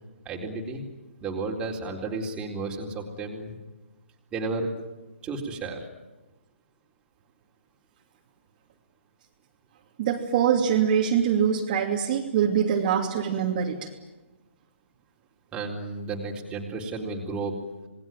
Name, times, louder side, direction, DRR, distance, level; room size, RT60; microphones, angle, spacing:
voice 1, 0.3-0.8 1.2-3.6 4.3-4.7 5.2-5.9 15.5-17.6, right 3 dB, 15° right, 0 dB, 4.0 m, -32 dB
voice 2, 10.0-13.9, right 8 dB, 35° right, 0 dB, 2.8 m, -24 dB
27.0 x 20.5 x 9.2 m, 1.1 s
hypercardioid pair, 150°, 7 cm